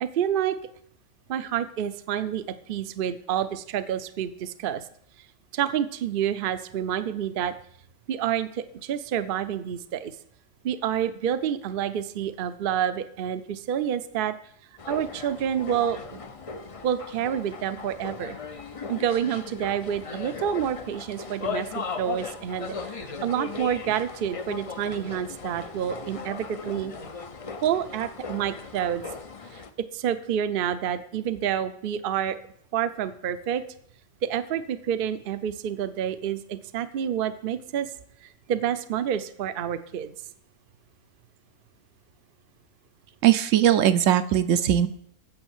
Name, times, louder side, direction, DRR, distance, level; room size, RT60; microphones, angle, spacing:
voice 1, 0.0-0.6 1.3-4.8 5.5-7.5 8.1-10.1 10.6-14.3 14.9-16.2 16.8-18.4 18.9-26.9 27.6-29.0 29.9-32.4 32.7-33.6 34.2-37.9 38.5-40.1, right 9 dB, 55° right, 11 dB, 0.7 m, -28 dB
sound 1, 14.8-29.7, left 4 dB, 35° left, 0.6 m, -37 dB
voice 2, 43.2-44.9, right 11 dB, 75° right, 11 dB, 1.0 m, -20 dB
8.8 x 6.9 x 7.2 m, 0.67 s
omnidirectional pair, 1.4 m